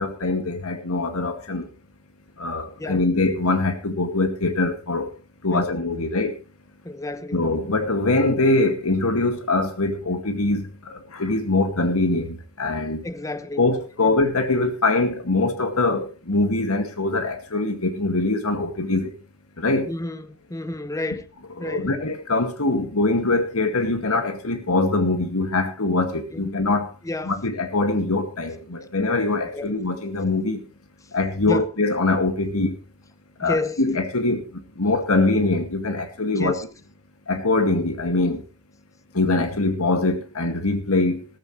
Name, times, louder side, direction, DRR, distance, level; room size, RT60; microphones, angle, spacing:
voice 1, 0.0-1.7 2.4-5.1 5.4-6.3 7.3-13.0 13.6-19.1 19.6-19.9 21.6-26.9 27.2-30.6 31.1-32.8 33.4-36.6 37.3-38.4 39.1-41.3, left 2 dB, 80° left, 2.1 m, -23 dB
voice 2, 6.8-7.4 13.0-13.6 14.0-14.1 19.9-21.2 21.6-21.9 26.3-26.5 27.0-27.4 29.5-29.8 31.5-31.7 33.4-33.8 36.3-36.6, left 2 dB, 15° left, 0.7 m, -30 dB
14.0 x 14.0 x 3.2 m
head